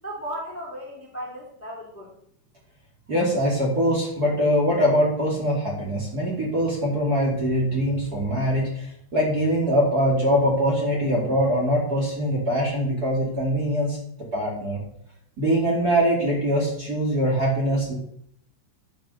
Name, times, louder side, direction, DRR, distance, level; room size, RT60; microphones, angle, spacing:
voice 1, 0.0-2.1, equal, 10° left, -1 dB, 0.9 m, -35 dB
voice 2, 3.1-14.0 14.3-14.8 15.4-17.9, equal, 30° right, -2 dB, 2.0 m, -23 dB
11.5 x 7.4 x 6.6 m, 0.68 s
omnidirectional pair, 5.8 m